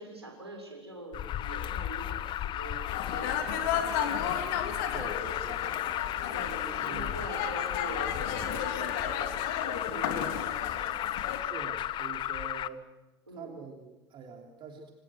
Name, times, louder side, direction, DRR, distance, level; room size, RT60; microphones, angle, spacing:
voice 1, 0.0-4.1 6.3-11.0 13.3-13.6, right 2 dB, 85° right, 2 dB, 6.7 m, -44 dB
Alarm, 1.1-12.7, left 12 dB, 35° left, 1.0 m, -34 dB
sound 1, 2.9-11.4, left 8 dB, 55° left, 3.4 m, -34 dB
voice 2, 4.9-5.7 6.7-7.2 11.4-12.8 13.3-14.9, right 5 dB, 40° right, 2 dB, 3.4 m, -45 dB
27.5 x 27.5 x 6.4 m, 1.0 s
figure-of-eight pair, 75°, 13 cm